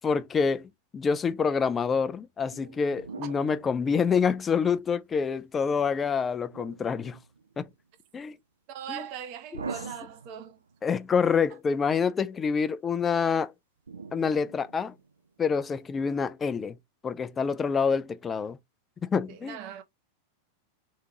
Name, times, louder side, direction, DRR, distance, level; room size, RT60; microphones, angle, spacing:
voice 1, 0.0-7.2 7.6-7.7 8.1-8.4 8.9-9.1 9.5-9.6 10.8-13.5 14.1-14.9 15.4-16.8 17.0-18.6 19.0-19.6, left 6 dB, 20° left, 0.4 m, -27 dB
sound 1, 2.5-4.8 6.5-7.7 9.5-10.9 13.9-15.3, right 4 dB, 75° right, 0.5 m, -43 dB
voice 2, 8.7-10.6 19.3-19.8, right 9 dB, 45° right, 0.8 m, -40 dB
3.7 x 2.8 x 2.8 m
figure-of-eight pair, 90°, 0 cm